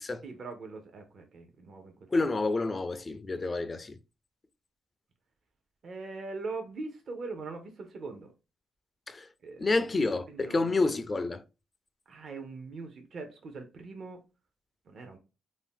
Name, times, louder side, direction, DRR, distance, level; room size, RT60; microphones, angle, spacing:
voice 1, 0.2-2.3 5.8-8.3 9.4-9.9 10.3-10.9 12.1-14.2 14.9-15.2, right 3 dB, 50° right, 0.6 m, -42 dB
voice 2, 2.1-4.0 9.1-9.2 9.6-11.4, left 3 dB, 30° left, 0.3 m, -29 dB
2.6 x 2.0 x 3.4 m
cardioid pair, 90°, 0 cm